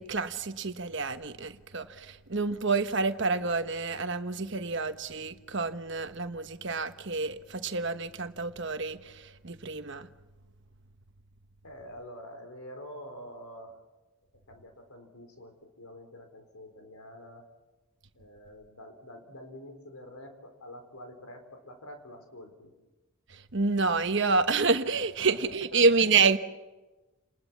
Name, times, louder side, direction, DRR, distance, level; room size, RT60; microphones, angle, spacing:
voice 1, 0.0-10.1 23.3-26.4, right 4 dB, 55° right, 9 dB, 1.2 m, -28 dB
voice 2, 11.6-13.8 14.5-17.5 18.1-22.7 25.2-26.1, equal, 80° left, 6 dB, 4.3 m, -47 dB
29.5 x 20.0 x 7.4 m, 1.1 s
head